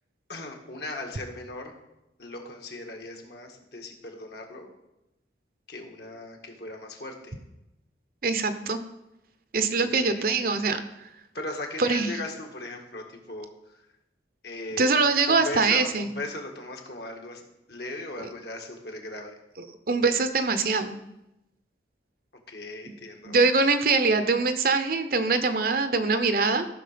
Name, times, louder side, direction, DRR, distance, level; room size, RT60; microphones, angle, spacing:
voice 1, 0.3-1.7 2.2-4.7 5.7-7.4 9.8-10.3 11.3-13.9 14.4-19.4 22.5-23.4, left 2 dB, 60° left, 3 dB, 1.8 m, -38 dB
voice 2, 8.2-8.8 9.5-10.8 11.8-12.1 14.8-16.1 19.9-21.0 23.3-26.7, right 4 dB, 50° right, 10 dB, 0.8 m, -23 dB
14.0 x 6.2 x 5.1 m, 0.92 s
head